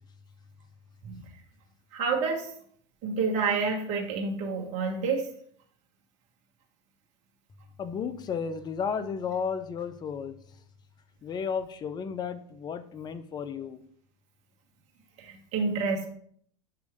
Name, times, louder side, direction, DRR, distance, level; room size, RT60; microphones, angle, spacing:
voice 1, 1.9-2.5 3.0-5.3 15.2-16.1, right 4 dB, 45° right, 0 dB, 1.3 m, -29 dB
voice 2, 7.8-10.4 11.2-13.8, left 6 dB, 25° left, 12 dB, 0.6 m, -33 dB
6.9 x 3.1 x 4.9 m, 0.62 s
hypercardioid pair, 95°, 16 cm